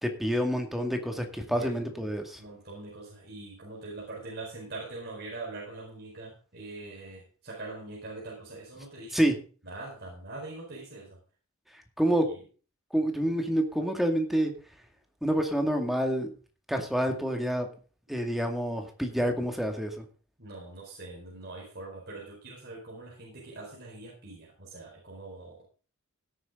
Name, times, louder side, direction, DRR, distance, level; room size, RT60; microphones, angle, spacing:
voice 1, 0.0-2.4 9.1-9.3 12.0-12.3 12.9-14.5 15.2-16.3 16.7-17.7 18.1-20.0, equal, ahead, 4 dB, 2.2 m, -28 dB
voice 2, 1.5-2.1 2.4-9.3 9.6-11.2 20.4-25.6, right 2 dB, 45° right, -3 dB, 4.6 m, -43 dB
17.0 x 9.5 x 3.8 m, 0.38 s
head